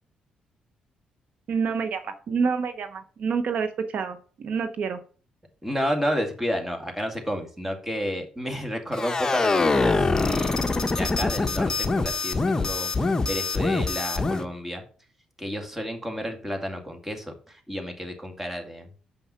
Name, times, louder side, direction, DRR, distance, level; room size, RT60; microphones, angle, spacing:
voice 1, 1.5-5.0, right 5 dB, 60° right, 9 dB, 0.9 m, -28 dB
voice 2, 5.6-10.6 10.9-14.8 15.4-18.9, equal, 10° right, 4 dB, 2.1 m, -31 dB
sound 1, 8.9-14.4, left 3 dB, 25° left, 0.9 m, -24 dB
6.9 x 5.8 x 5.7 m, 0.40 s
cardioid pair, 105°, 3 cm